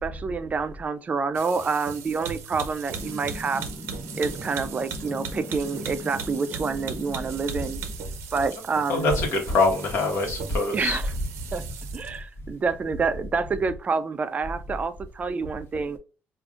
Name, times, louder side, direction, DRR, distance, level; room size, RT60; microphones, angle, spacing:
voice 1, 0.0-3.6 4.1-7.8 8.3-9.1 10.7-11.0 11.5-11.6 11.9-16.0, right 4 dB, 35° right, 0.3 m, -28 dB
sound 1, 1.3-12.2, right 6 dB, 85° right, 0.5 m, -38 dB
sound 2, 2.9-8.0, left 2 dB, 25° left, 0.9 m, -40 dB
voice 2, 8.9-11.0, left 3 dB, 75° left, 1.1 m, -24 dB
4.9 x 2.5 x 2.4 m
cardioid pair, 105°, 4 cm